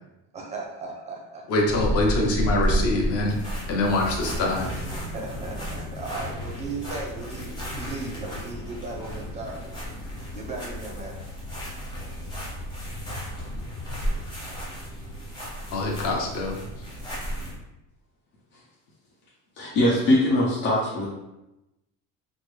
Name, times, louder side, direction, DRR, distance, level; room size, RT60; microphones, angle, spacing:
voice 1, 0.3-1.5 4.9-7.5 7.7-9.6 10.3-11.2, right 3 dB, 20° right, -1 dB, 0.5 m, -36 dB
voice 2, 1.5-4.8 15.7-16.6, left 2 dB, 45° left, 0 dB, 0.7 m, -25 dB
sound 1, 1.7-17.6, equal, 10° left, 0.8 m, -32 dB
voice 3, 19.6-21.1, left 1 dB, 85° left, -6 dB, 0.9 m, -21 dB
3.6 x 2.0 x 3.1 m, 0.94 s
cardioid pair, 160°, 35 cm